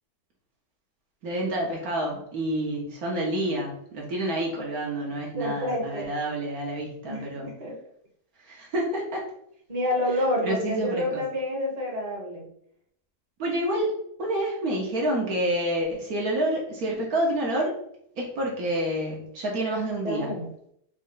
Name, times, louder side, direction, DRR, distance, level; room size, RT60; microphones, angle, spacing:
voice 1, 1.2-7.5 8.4-9.2 10.4-11.2 13.4-13.9 14.2-17.7 18.2-20.3, right 1 dB, 60° right, -2 dB, 1.4 m, -28 dB
voice 2, 5.4-6.1 7.1-7.8 9.7-12.5 20.0-20.5, left 1 dB, 25° right, -1 dB, 1.0 m, -28 dB
4.2 x 3.1 x 3.9 m, 0.70 s
omnidirectional pair, 1.8 m